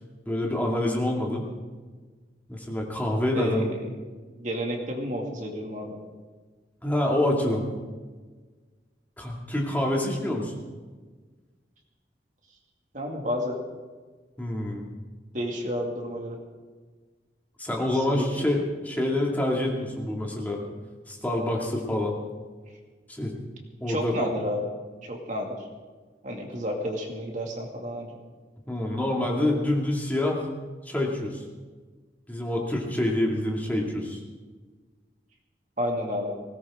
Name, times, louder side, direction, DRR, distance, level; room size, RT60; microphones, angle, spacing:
voice 1, 0.3-1.4 2.5-3.7 6.8-7.6 9.2-10.5 14.4-14.9 17.6-20.6 21.1-22.2 23.1-23.3 23.8-24.3 28.7-30.5 30.9-31.4 32.3-34.2, left 1 dB, 10° left, -1 dB, 2.3 m, -26 dB
voice 2, 3.3-3.8 4.4-6.0 12.9-13.6 15.3-16.4 18.2-18.5 23.9-24.7 25.0-25.6 26.2-28.1 35.8-36.3, equal, 45° right, 1 dB, 2.2 m, -31 dB
19.5 x 17.5 x 3.7 m, 1.4 s
head